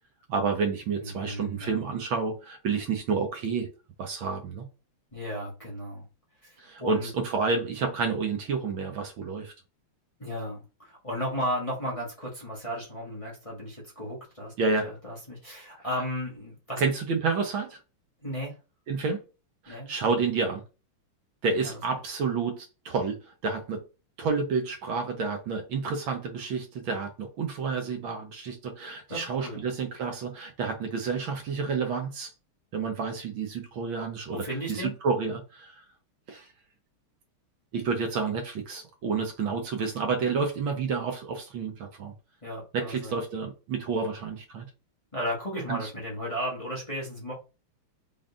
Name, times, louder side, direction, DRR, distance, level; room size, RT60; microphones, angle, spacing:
voice 1, 0.3-3.7 4.0-4.7 6.6-9.5 14.6-14.9 16.8-17.8 18.9-19.2 19.6-20.6 21.4-23.8 24.2-32.3 32.7-35.8 36.3-36.5 37.7-42.1 42.7-44.7 45.7-45.9, right 4 dB, 70° right, 1.7 m, -30 dB
voice 2, 1.0-1.8 5.1-6.1 6.4-7.1 10.2-14.5 14.8-16.8 18.2-18.5 19.7-19.9 21.6-21.7 29.1-29.6 34.3-34.9 42.4-43.1 45.1-47.3, equal, 15° left, 1.5 m, -34 dB
4.9 x 3.9 x 2.6 m
omnidirectional pair, 2.4 m